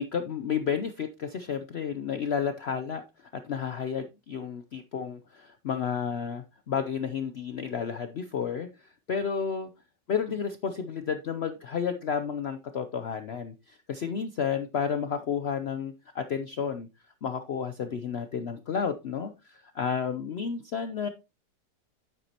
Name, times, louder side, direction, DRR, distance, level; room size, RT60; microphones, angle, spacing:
voice 1, 0.0-9.7 10.1-16.9 17.2-21.1, left 7 dB, 90° left, 10 dB, 0.5 m, -31 dB
9.3 x 8.0 x 2.8 m, 0.26 s
omnidirectional pair, 1.9 m